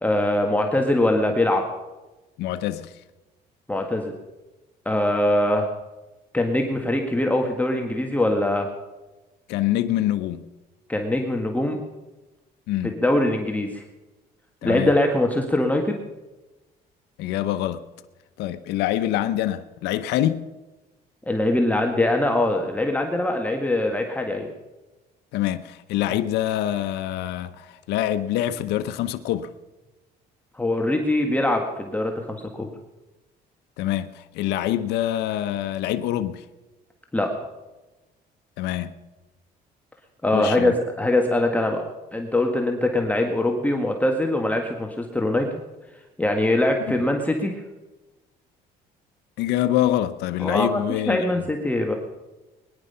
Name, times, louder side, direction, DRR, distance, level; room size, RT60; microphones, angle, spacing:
voice 1, 0.0-1.6 3.7-4.1 4.8-5.7 6.3-8.7 10.9-11.8 12.8-13.8 14.6-16.0 21.3-24.5 30.5-32.7 37.1-37.3 40.2-40.7 41.0-41.8 42.1-45.5 46.2-47.5 50.4-50.8 51.1-51.9, left 1 dB, 10° left, 1.7 m, -22 dB
voice 2, 2.4-2.9 9.5-10.5 12.7-13.0 14.6-14.9 17.2-17.8 18.4-20.5 25.3-29.5 33.8-36.4 38.6-39.0 40.3-40.8 49.4-51.3, left 12 dB, 85° left, 0.8 m, -25 dB
21.0 x 10.5 x 5.6 m
cardioid pair, 110°, 17 cm